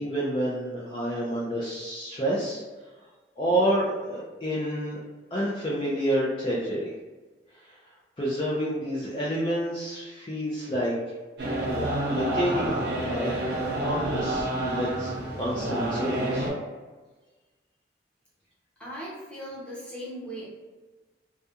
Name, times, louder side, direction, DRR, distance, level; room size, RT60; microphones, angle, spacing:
voice 1, 0.0-2.6 3.4-5.0 5.3-6.9 8.2-11.0 11.7-13.4 13.8-16.5, equal, 30° left, -7 dB, 0.4 m, -29 dB
sound 1, 11.4-16.5, right 1 dB, 65° right, 0.8 m, -29 dB
voice 2, 18.8-20.5, equal, 5° left, -7 dB, 0.7 m, -38 dB
2.3 x 2.2 x 2.8 m, 1.3 s
head